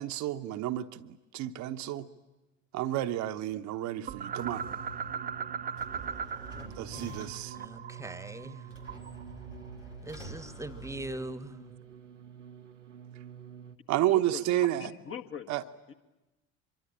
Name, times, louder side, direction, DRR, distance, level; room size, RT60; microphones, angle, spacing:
voice 1, 0.0-2.1 2.7-4.6 6.8-7.5 13.9-14.9 15.5-15.6, right 14 dB, 50° right, 8 dB, 1.0 m, -31 dB
sound 1, 4.0-13.8, right 7 dB, 85° right, 0.9 m, -48 dB
sound 2, 4.1-6.7 6.9-9.2, right 7 dB, 25° right, 0.8 m, -38 dB
sound 3, 5.7-7.6 8.7-11.6, right 2 dB, 90° left, 2.5 m, -46 dB
voice 2, 7.5-8.8 10.0-11.7, right 1 dB, 10° right, 14 dB, 1.3 m, -41 dB
voice 3, 14.1-15.5 15.9-16.0, left 8 dB, 35° left, 8 dB, 1.6 m, -42 dB
24.5 x 22.5 x 8.7 m, 1.0 s
figure-of-eight pair, 55°, 37 cm